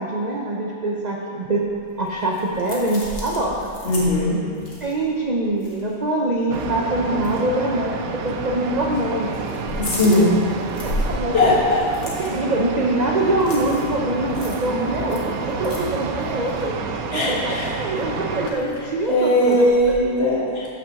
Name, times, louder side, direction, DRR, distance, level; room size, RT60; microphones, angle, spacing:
voice 1, 0.0-1.7 2.0-3.7 4.8-9.3 10.0-10.3 10.8-11.6 12.0-19.9, right 1 dB, 45° right, -1 dB, 0.5 m, -24 dB
sound 1, 1.7-6.2 6.5-6.7 7.1-7.3 8.2-8.8 9.1-20.0, left 1 dB, 70° left, 1.9 m, -35 dB
voice 2, 3.8-4.4 9.8-10.4 11.3-11.8 17.1-17.9 19.1-20.7, left 1 dB, 45° left, -7 dB, 2.0 m, -19 dB
sound 2, 6.5-18.5, right 5 dB, 90° right, 1.1 m, -29 dB
6.1 x 5.9 x 7.0 m, 2.4 s
omnidirectional pair, 1.5 m